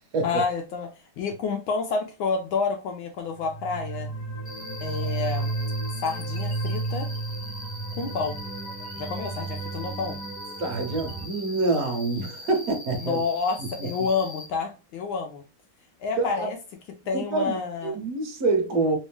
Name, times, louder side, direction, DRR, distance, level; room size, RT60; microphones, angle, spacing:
voice 1, 0.2-0.9 1.2-4.1 4.8-5.5 6.0-7.1 8.0-8.4 9.0-10.2 13.0-15.4 16.0-16.6 17.1-18.0, left 4 dB, 75° left, 1.3 m, -29 dB
sound 1, 3.4-11.3, right 3 dB, 60° left, 1.4 m, -32 dB
Cricket, 4.4-14.4, left 1 dB, ahead, 0.5 m, -42 dB
voice 2, 10.6-13.2 13.8-13.9 16.2-16.5 17.1-19.0, right 3 dB, 60° right, 1.2 m, -26 dB
3.4 x 2.7 x 3.2 m
omnidirectional pair, 2.4 m